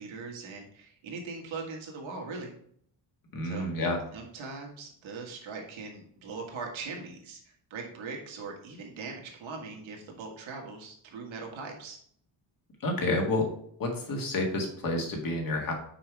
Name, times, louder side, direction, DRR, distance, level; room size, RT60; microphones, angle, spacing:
voice 1, 0.0-2.5 3.4-3.7 4.1-7.4 7.7-12.0, right 4 dB, 90° right, 1 dB, 1.8 m, -40 dB
voice 2, 3.3-4.0 12.8-13.5 13.8-15.7, left 2 dB, 45° left, 1 dB, 1.8 m, -29 dB
6.0 x 4.8 x 4.7 m, 0.64 s
wide cardioid pair, 155°, 45 cm